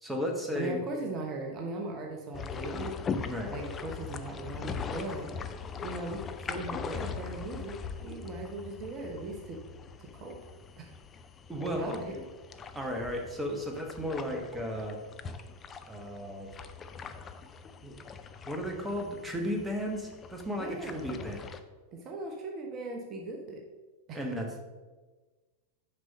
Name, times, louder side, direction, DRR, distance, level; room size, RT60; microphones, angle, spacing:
voice 1, 0.0-0.8 3.3-3.5 11.5-12.2 12.7-15.0 15.9-16.5 17.8-18.0 18.5-21.5 24.1-24.7, equal, 10° right, 2 dB, 1.2 m, -34 dB
voice 2, 0.5-3.0 3.5-5.3 5.8-9.6 10.0-10.4 10.8-10.9 11.6-12.1 20.5-21.2 21.9-23.6 24.1-24.2, right 2 dB, 30° right, 2 dB, 1.0 m, -39 dB
sound 1, 2.3-21.6, left 6 dB, 25° left, 0.5 m, -41 dB
6.7 x 5.4 x 5.2 m, 1.3 s
figure-of-eight pair, 90°, 0 cm